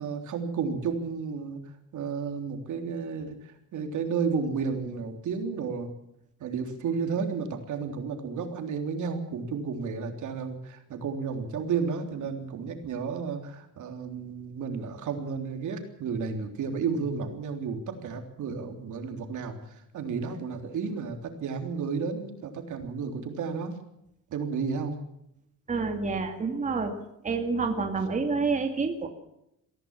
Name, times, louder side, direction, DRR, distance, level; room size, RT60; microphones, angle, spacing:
voice 1, 0.0-1.6 1.9-5.9 6.4-23.7 24.3-25.0, right 5 dB, 70° right, 5 dB, 3.5 m, -32 dB
voice 2, 25.7-27.0 27.2-29.1, right 4 dB, 25° right, 4 dB, 2.3 m, -28 dB
23.0 x 16.0 x 7.3 m, 0.81 s
cardioid pair, 160°, 31 cm